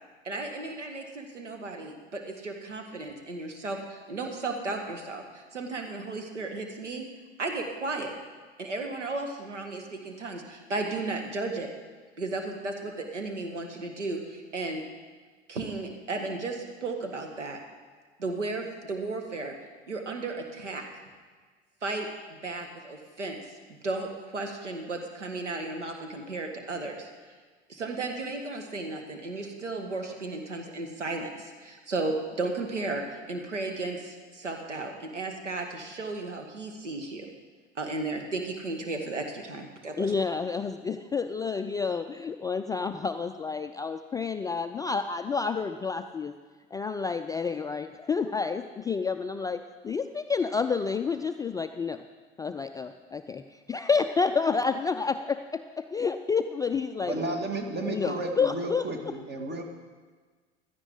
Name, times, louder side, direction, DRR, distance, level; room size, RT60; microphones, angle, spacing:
voice 1, 0.2-7.0 7.4-8.1 8.6-11.7 12.2-14.8 15.5-17.6 18.2-19.5 19.9-20.8 21.8-23.4 23.8-27.1 27.7-37.3 37.7-40.1, right 3 dB, 90° right, 3 dB, 1.6 m, -34 dB
voice 2, 40.0-46.3 46.7-52.0 52.4-57.2 57.8-58.8, left 5 dB, 10° left, 7 dB, 0.3 m, -29 dB
voice 3, 57.0-59.6, right 2 dB, 30° right, 4 dB, 2.2 m, -32 dB
16.0 x 13.0 x 3.8 m, 1.4 s
figure-of-eight pair, 75°, 35 cm